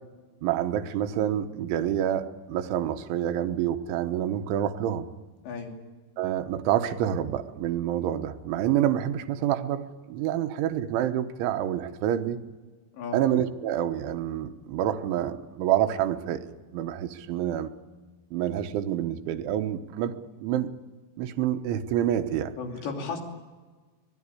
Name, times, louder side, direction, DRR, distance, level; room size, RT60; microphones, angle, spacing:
voice 1, 0.4-5.1 6.2-12.4 13.1-17.7 18.3-20.1 20.4-20.7 21.2-22.5, right 11 dB, 85° right, 8 dB, 3.5 m, -27 dB
voice 2, 5.4-5.8 12.9-13.2 22.6-23.2, left 5 dB, 70° left, 2 dB, 5.2 m, -34 dB
24.0 x 18.5 x 10.0 m, 1.3 s
omnidirectional pair, 5.3 m